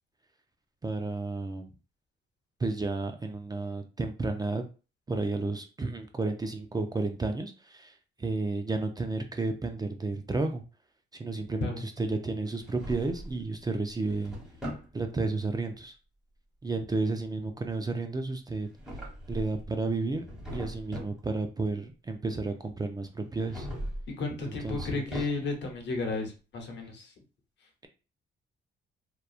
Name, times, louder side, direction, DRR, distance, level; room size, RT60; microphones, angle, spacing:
voice 1, 0.8-1.7 2.6-4.6 5.1-10.6 11.1-14.4 14.9-15.9 16.6-18.7 19.3-20.3 20.5-23.7 24.5-25.0, right 3 dB, 20° right, 5 dB, 0.4 m, -32 dB
Drawer open or close, 12.5-13.4 13.9-14.9 18.5-19.7 20.1-21.2 23.4-24.1 24.4-25.7, equal, 5° right, 1.4 m, -40 dB
voice 2, 24.2-27.1, left 3 dB, 65° left, 3 dB, 0.9 m, -33 dB
2.9 x 2.3 x 2.4 m, 0.33 s
cardioid pair, 90°, 20 cm